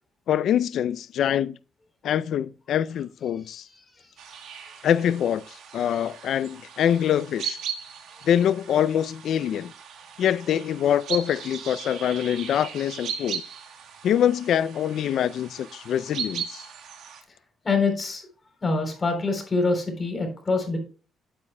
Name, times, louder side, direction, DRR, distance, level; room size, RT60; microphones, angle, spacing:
voice 1, 0.3-1.6 2.0-3.7 4.8-7.6 8.2-9.7 10.2-13.4 14.0-16.6, left 9 dB, 70° left, 0.4 m, -24 dB
sound 1, 4.2-17.2, right 7 dB, 80° right, 1.5 m, -38 dB
voice 2, 17.6-18.2 18.6-20.8, left 3 dB, 30° left, 3.6 m, -25 dB
11.0 x 8.6 x 2.2 m
cardioid pair, 90°, 0 cm